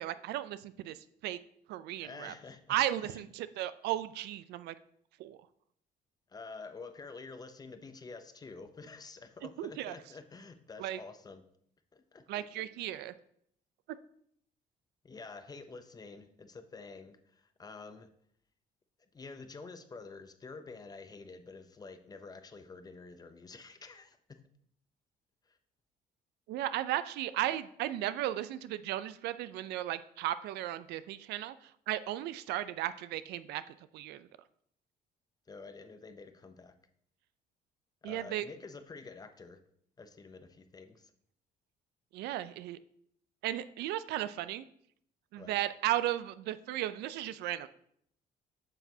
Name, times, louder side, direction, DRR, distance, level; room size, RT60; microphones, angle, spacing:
voice 1, 0.0-1.4 1.7-2.3 2.7-4.7 5.2-5.4 9.6-9.9 10.8-11.0 12.3-13.1 13.9-14.0 26.5-34.3 38.0-38.4 42.1-42.8 43.4-44.7 45.3-47.7, right 13 dB, 80° right, 14 dB, 0.4 m, -35 dB
voice 2, 2.0-2.8 3.0-3.3 6.3-11.4 11.9-12.6 15.0-18.1 19.1-24.4 25.5-25.6 35.5-36.7 38.0-39.6 40.0-41.1 45.4-45.6, left 4 dB, 25° left, 9 dB, 0.6 m, -49 dB
8.9 x 5.9 x 2.7 m, 0.68 s
cardioid pair, 110°, 17 cm